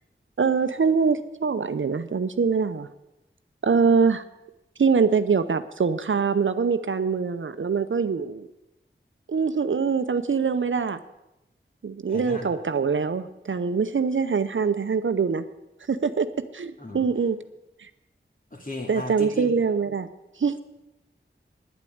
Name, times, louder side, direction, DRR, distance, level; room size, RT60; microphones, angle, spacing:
voice 1, 0.4-2.9 3.6-4.2 4.8-8.5 9.3-11.0 11.8-15.4 15.9-16.3 16.5-17.4 17.8-17.9 18.9-20.1 20.4-20.6, right 5 dB, 70° right, 11 dB, 0.7 m, -23 dB
voice 2, 12.1-12.6 16.8-17.1 18.5-19.5, left 1 dB, 40° left, 2 dB, 2.6 m, -35 dB
10.5 x 8.4 x 8.6 m, 0.94 s
wide cardioid pair, 45°, 21 cm